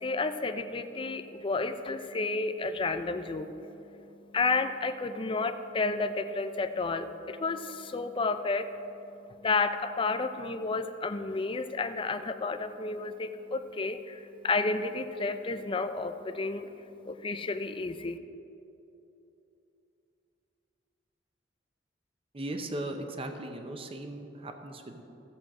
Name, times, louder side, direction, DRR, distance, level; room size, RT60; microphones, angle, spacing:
voice 1, 0.0-3.5 4.3-8.6 9.4-16.7 17.1-18.2, left 3 dB, 30° left, 9 dB, 0.5 m, -31 dB
voice 2, 22.3-25.0, right 1 dB, 30° right, 5 dB, 0.8 m, -38 dB
14.5 x 7.7 x 4.8 m, 2.9 s
head